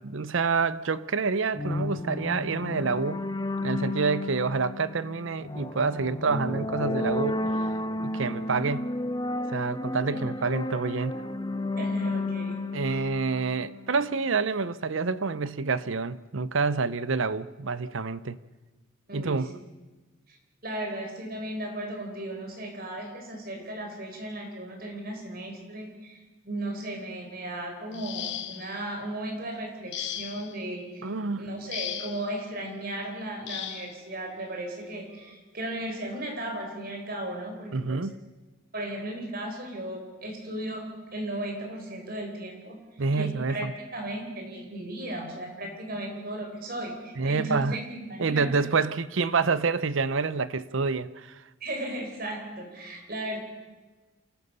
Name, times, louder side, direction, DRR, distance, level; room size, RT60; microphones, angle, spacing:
voice 1, 0.0-3.2 3.6-7.4 8.0-8.9 9.5-11.2 12.7-18.4 19.1-19.5 31.0-31.5 37.7-38.1 43.0-43.7 47.2-47.8 48.2-51.4, right 4 dB, 70° right, 0.7 m, -27 dB
sound 1, 1.5-14.0, left 2 dB, 20° left, 0.8 m, -32 dB
voice 2, 11.8-13.1 19.1-19.4 20.3-20.4 20.6-31.1 31.4-38.0 38.7-42.8 43.1-48.5 51.6-53.4, right 1 dB, 45° right, 4.5 m, -36 dB
sound 2, 27.9-28.8 29.9-30.6 31.7-32.3 33.5-33.9 35.1-35.3 35.8-36.0, left 10 dB, 55° left, 1.3 m, -36 dB
28.0 x 15.0 x 6.8 m
head